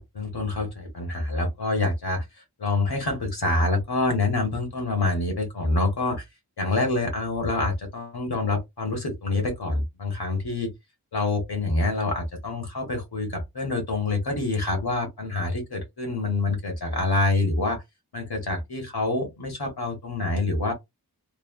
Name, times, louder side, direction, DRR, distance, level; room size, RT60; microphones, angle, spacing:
voice 1, 0.0-2.3 2.6-6.2 6.6-10.7 11.1-17.8 18.1-20.7, left 2 dB, 80° left, 1.2 m, -26 dB
3.2 x 2.2 x 2.2 m
wide cardioid pair, 60°, 38 cm